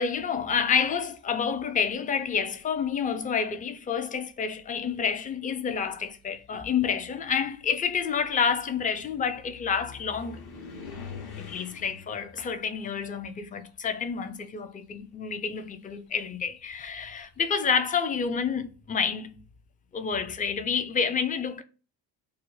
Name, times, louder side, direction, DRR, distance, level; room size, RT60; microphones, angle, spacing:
voice 1, 0.0-10.4 11.4-19.4 19.9-21.6, left 6 dB, 20° left, 0.3 m, -29 dB
sound 1, 2.3-2.8 3.8-3.9 4.5-14.4 14.7-17.3, left 5 dB, 55° left, 0.9 m, -47 dB
2.4 x 2.2 x 3.0 m
supercardioid pair, 75°, 47 cm